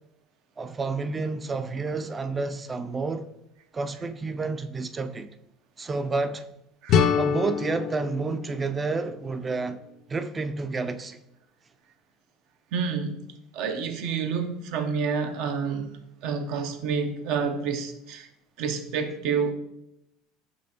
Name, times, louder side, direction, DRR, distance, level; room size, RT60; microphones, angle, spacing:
voice 1, 0.6-3.3 3.7-5.3 5.8-6.5 7.2-9.8 10.1-11.2, right 3 dB, 25° right, 0.3 m, -30 dB
voice 2, 6.8-7.2 12.7-13.2 13.5-18.3 18.6-19.5, right 6 dB, 70° right, 0.6 m, -29 dB
sound 1, 6.9-9.8, left 7 dB, 55° left, 0.4 m, -27 dB
5.3 x 3.4 x 2.7 m
supercardioid pair, 105°, 0 cm